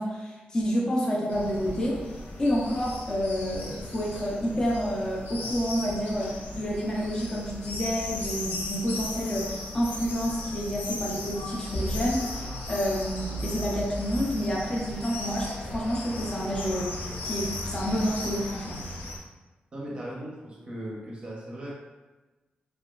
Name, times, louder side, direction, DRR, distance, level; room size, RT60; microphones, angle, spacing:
voice 1, 0.0-2.0 2.4-18.8, equal, 20° left, -3 dB, 0.4 m, -29 dB
sound 1, 1.3-19.2, left 1 dB, 75° left, 0.5 m, -36 dB
voice 2, 19.7-21.7, right 1 dB, 30° right, -3 dB, 0.6 m, -38 dB
2.7 x 2.2 x 2.3 m, 1.2 s
wide cardioid pair, 165°, 3 cm